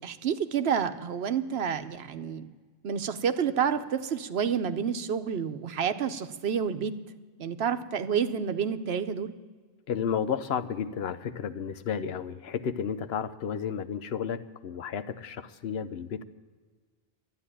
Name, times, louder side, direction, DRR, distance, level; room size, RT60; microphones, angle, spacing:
voice 1, 0.0-2.5 2.8-7.0 7.4-9.3, right 7 dB, 85° right, 10 dB, 1.0 m, -29 dB
voice 2, 9.9-16.2, left 7 dB, 85° left, 12 dB, 1.0 m, -32 dB
12.5 x 9.6 x 9.9 m, 1.5 s
omnidirectional pair, 1.0 m